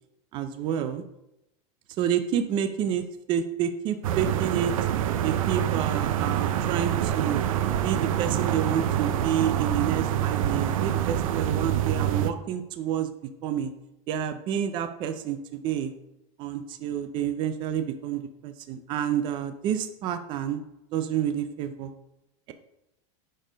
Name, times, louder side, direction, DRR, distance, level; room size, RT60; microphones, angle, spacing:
voice 1, 0.3-1.0 2.0-4.7 5.2-7.4 7.8-13.1 13.4-13.7 14.1-15.9 16.4-20.6 20.9-21.9, right 9 dB, 30° right, 9 dB, 0.5 m, -29 dB
sound 1, 4.0-12.3, right 10 dB, 90° right, 0.7 m, -26 dB
11.0 x 4.4 x 5.1 m, 0.90 s
supercardioid pair, 170°, 17 cm